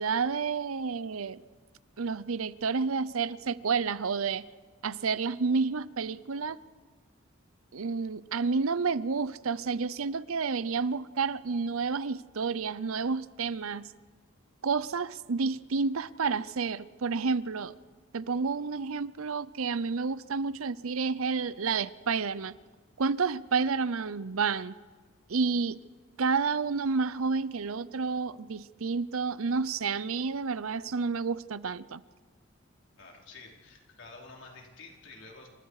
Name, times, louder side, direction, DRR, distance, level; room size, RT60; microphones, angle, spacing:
voice 1, 0.0-1.4 2.0-4.5 4.8-6.6 7.7-13.9 14.6-17.7 18.1-22.6 23.0-24.8 25.3-25.8 26.2-32.0, right 5 dB, 80° right, 17 dB, 0.7 m, -30 dB
voice 2, 33.0-35.5, left 3 dB, 60° left, 0 dB, 4.5 m, -49 dB
28.5 x 27.0 x 4.9 m, 1.5 s
head